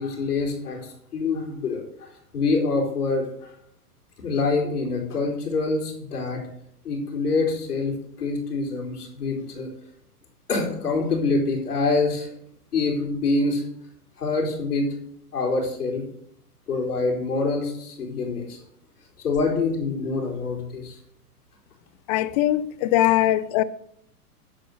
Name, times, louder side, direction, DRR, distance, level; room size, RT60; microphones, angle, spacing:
voice 1, 0.0-1.8 2.3-3.5 4.2-6.4 6.8-9.7 10.5-12.3 12.7-13.6 14.2-14.9 15.3-16.0 16.7-18.6 19.2-21.0, left 3 dB, 75° left, 4.0 m, -25 dB
voice 2, 22.1-23.6, left 14 dB, 30° left, 0.5 m, -21 dB
9.7 x 8.6 x 6.5 m
hypercardioid pair, 125°, 46 cm